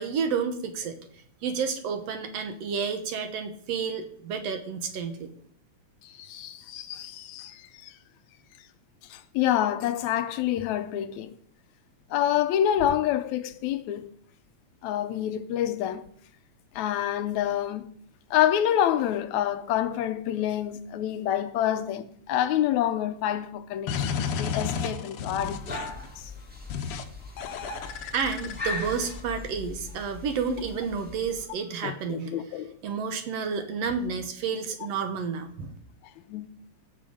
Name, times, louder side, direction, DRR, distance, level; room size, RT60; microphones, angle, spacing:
voice 1, 0.0-5.3 28.1-32.4 32.8-35.7, right 6 dB, 65° right, 1.9 m, -30 dB
voice 2, 6.0-7.9 9.1-11.3 12.1-14.1 14.8-16.0 16.8-17.9 18.3-25.8 26.2-26.3 31.8-32.7 36.3-36.5, left 11 dB, 80° left, 2.0 m, -27 dB
sound 1, 23.9-26.1 26.7-27.0 27.4-29.2, left 6 dB, 65° left, 1.5 m, -32 dB
sound 2, 25.4-31.5, left 2 dB, 5° right, 0.9 m, -39 dB
16.5 x 6.7 x 5.1 m
omnidirectional pair, 3.4 m